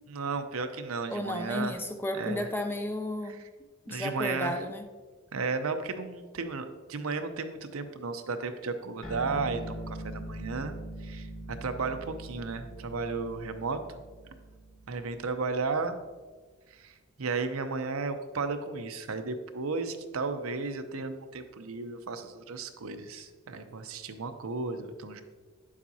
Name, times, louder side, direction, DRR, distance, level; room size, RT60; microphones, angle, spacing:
voice 1, 0.1-1.8 2.1-2.5 3.2-3.5 3.9-4.6 5.3-13.8 14.9-16.0 16.7-25.2, right 4 dB, 70° right, 8 dB, 0.7 m, -34 dB
voice 2, 1.1-3.4 3.9-4.9, left 1 dB, 10° left, 6 dB, 0.4 m, -33 dB
sound 1, 9.0-15.8, right 1 dB, 65° left, 1.8 m, -42 dB
9.2 x 7.3 x 2.8 m, 1.4 s
head